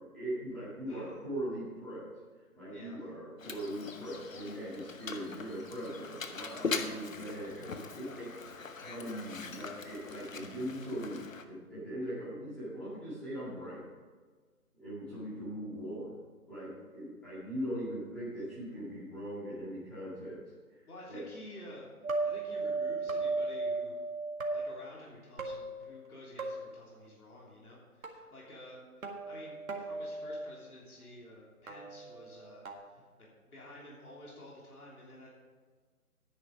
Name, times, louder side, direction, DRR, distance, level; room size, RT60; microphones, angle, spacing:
voice 1, 0.1-2.0 2.5-7.7 8.0-13.8 14.7-16.2 16.5-20.4 20.7-21.3, equal, ahead, -13 dB, 2.2 m, -40 dB
Mechanisms, 3.4-11.4, left 4 dB, 60° left, 1.1 m, -41 dB
voice 2, 20.9-21.9 22.2-24.0 24.5-35.3, left 1 dB, 75° left, -4 dB, 3.5 m, -51 dB
sound 1, 22.0-24.5 25.4-26.1 26.4-26.8 28.0-28.1 29.0-30.3 31.7-32.7, right 3 dB, 65° right, 1.9 m, -36 dB
10.0 x 10.0 x 5.2 m, 1.5 s
figure-of-eight pair, 170°, 45 cm